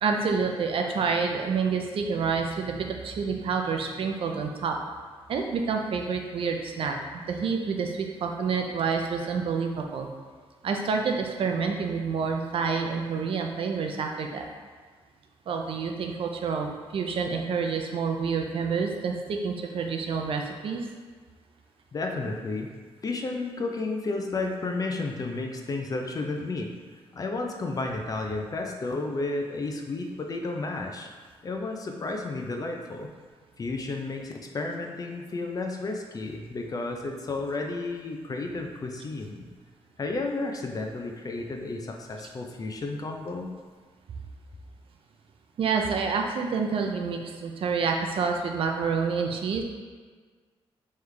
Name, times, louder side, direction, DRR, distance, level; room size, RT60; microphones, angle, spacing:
voice 1, 0.0-4.8 5.3-10.1 10.6-14.5 15.5-20.9 45.6-49.6, right 5 dB, 60° right, 3 dB, 0.5 m, -28 dB
voice 2, 21.9-22.7 23.0-26.8 27.1-31.1 31.4-33.1 33.6-39.5 40.0-43.5, left 3 dB, 35° left, 2 dB, 0.5 m, -32 dB
3.8 x 3.2 x 3.3 m, 1.5 s
cardioid pair, 90°, 10 cm